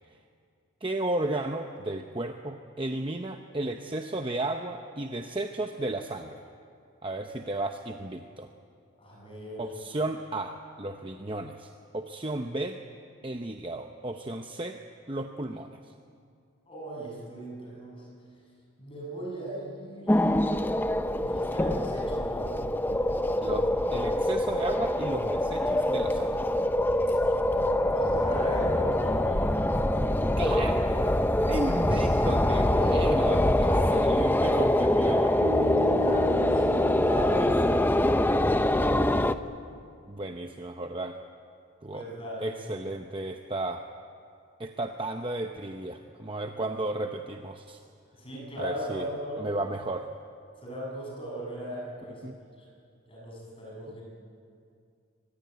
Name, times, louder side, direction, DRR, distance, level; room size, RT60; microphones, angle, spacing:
voice 1, 0.8-6.4 7.0-8.5 9.6-12.8 13.2-14.8 15.1-15.9 23.4-26.4 30.2-30.7 31.5-35.3 37.3-37.9 39.3-39.4 40.1-41.2 41.8-42.0 42.4-43.9 44.6-47.8 48.6-49.1 49.4-50.1 52.2-52.4, right 2 dB, 25° right, 5 dB, 0.8 m, -34 dB
voice 2, 9.0-9.6 16.7-18.1 18.8-20.2 21.2-22.6 27.9-30.1 32.7-33.1 33.6-33.9 34.9-35.2 35.8-38.4 41.9-42.5 46.5-46.6 48.1-49.4 50.6-52.2 53.1-54.0, right 1 dB, 25° left, -2 dB, 7.5 m, -38 dB
sound 1, 20.1-39.3, left 1 dB, 10° left, 0.6 m, -24 dB
sound 2, 35.4-39.8, left 3 dB, 90° right, 2.6 m, -36 dB
24.5 x 20.0 x 9.2 m, 2.3 s
head